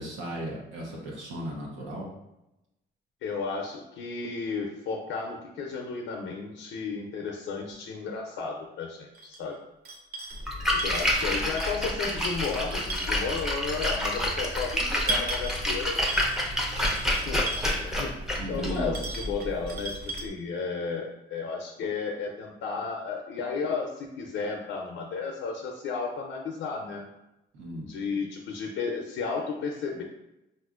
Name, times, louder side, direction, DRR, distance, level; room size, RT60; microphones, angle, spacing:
voice 1, 0.0-2.1 18.4-18.9 27.5-27.9, equal, 75° right, -3 dB, 0.8 m, -36 dB
voice 2, 3.2-9.6 10.7-16.0 16.7-18.2 18.5-27.1 27.8-30.0, left 5 dB, 80° left, 1 dB, 0.5 m, -33 dB
sound 1, 9.1-9.4 9.8-10.5 10.8-11.9 12.3-13.4 14.1-14.2 14.8-15.7 16.1-16.5 16.8-17.9 18.7-20.2, right 3 dB, 50° right, 0.6 m, -36 dB
Splash splatter, 10.3-20.3, left 1 dB, ahead, 0.6 m, -29 dB
4.1 x 2.5 x 2.3 m, 0.90 s
cardioid pair, 90°, 20 cm